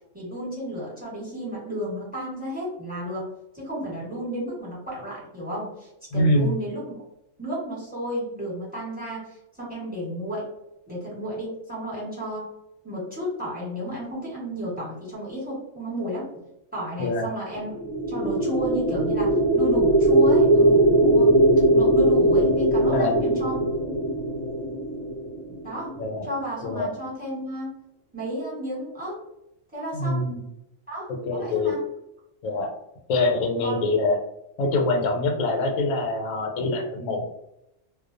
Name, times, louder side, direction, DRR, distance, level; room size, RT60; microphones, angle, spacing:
voice 1, 0.1-3.3 3.5-7.0 7.4-10.5 10.9-12.5 12.8-16.3 16.7-17.7 18.1-21.3 21.7-23.6 25.6-25.9 26.2-27.7 28.1-29.2 29.7-30.3 30.9-31.8 33.6-33.8, equal, 5° right, -7 dB, 1.0 m, -32 dB
voice 2, 6.1-6.5 17.0-17.3 22.9-23.2 25.1-25.2 26.0-26.3 26.6-26.9 29.9-30.4 31.2-31.8 32.4-32.7 33.1-34.2 34.6-37.5, left 2 dB, 75° left, 2 dB, 0.9 m, -24 dB
sound 1, 17.7-25.8, right 1 dB, 25° right, 0.6 m, -20 dB
2.3 x 2.1 x 2.5 m, 0.85 s
omnidirectional pair, 1.4 m